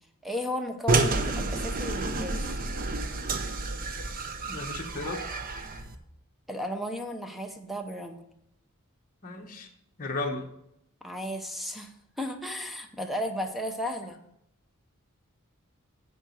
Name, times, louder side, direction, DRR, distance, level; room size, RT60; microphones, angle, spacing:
voice 1, 0.2-2.5 6.5-8.2 11.0-14.2, equal, ahead, 5 dB, 0.9 m, -34 dB
sound 1, 0.9-6.0, right 3 dB, 40° right, 0.8 m, -29 dB
voice 2, 4.5-5.3 9.2-9.7 10.0-10.5, left 2 dB, 40° left, 0 dB, 1.1 m, -34 dB
9.7 x 5.1 x 6.4 m, 0.79 s
head